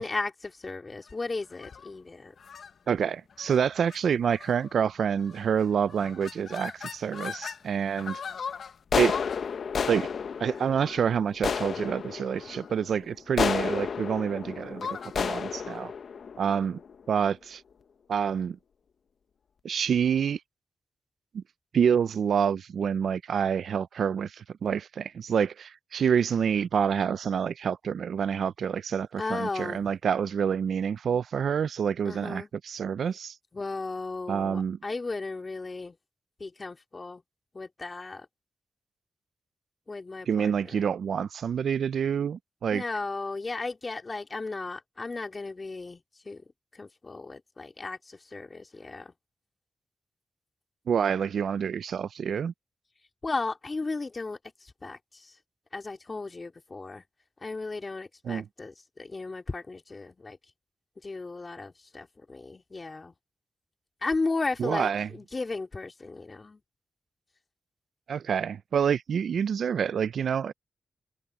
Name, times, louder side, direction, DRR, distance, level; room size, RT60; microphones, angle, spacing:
voice 1, 0.0-2.3 29.2-29.9 32.1-32.5 33.5-36.0 36.4-37.2 37.5-38.3 39.9-40.7 42.7-46.4 46.7-49.1 53.2-54.4 54.8-55.3 55.7-57.0 57.4-60.4 61.0-63.1 64.0-66.6, left 3 dB, 40° left, 2.8 m, -35 dB
sound 1, 1.5-1.9 2.4-2.7 3.4-3.6 3.9-4.0 4.3-4.7 5.3-5.6 5.9-7.6 8.0-17.2, left 6 dB, 75° left, 0.9 m, -33 dB
voice 2, 2.9-8.2 9.0-9.2 9.9-10.1 10.4-15.9 16.4-16.8 17.1-17.6 18.1-18.6 19.6-20.4 21.3-21.4 21.7-33.3 34.3-34.8 40.3-42.8 50.9-52.5 58.2-58.5 64.6-65.1 68.1-70.5, right 7 dB, 80° right, 0.4 m, -27 dB
cardioid pair, 65°, 0 cm